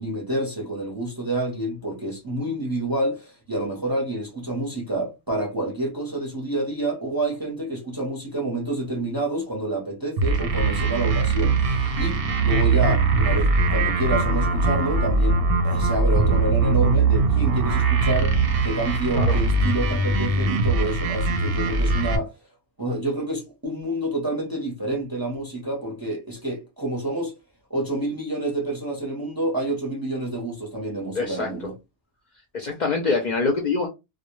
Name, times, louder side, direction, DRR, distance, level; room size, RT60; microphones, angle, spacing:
voice 1, 0.0-18.3 18.6-22.3 22.8-27.3 27.7-31.7, right 1 dB, 25° right, 0.6 m, -28 dB
sound 1, 10.2-22.2, right 3 dB, 65° right, 0.7 m, -21 dB
voice 2, 31.1-31.5 32.5-33.9, left 4 dB, 55° left, 0.5 m, -24 dB
2.1 x 2.1 x 2.9 m
omnidirectional pair, 1.1 m